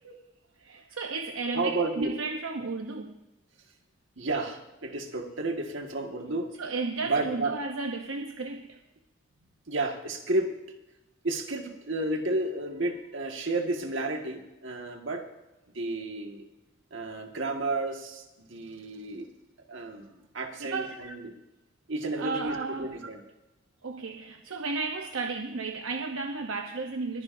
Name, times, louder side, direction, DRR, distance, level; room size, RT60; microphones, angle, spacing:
voice 1, 0.6-3.2 6.6-8.8 20.6-21.0 22.2-22.9 23.8-27.2, right 3 dB, 80° right, 4 dB, 0.8 m, -33 dB
voice 2, 1.5-2.1 4.2-6.5 7.1-7.5 9.7-10.5 11.2-15.3 15.7-16.5 16.9-19.3 19.7-21.3 21.9-23.2, right 2 dB, 65° right, 3 dB, 1.8 m, -32 dB
21.5 x 15.0 x 2.7 m, 1.0 s
head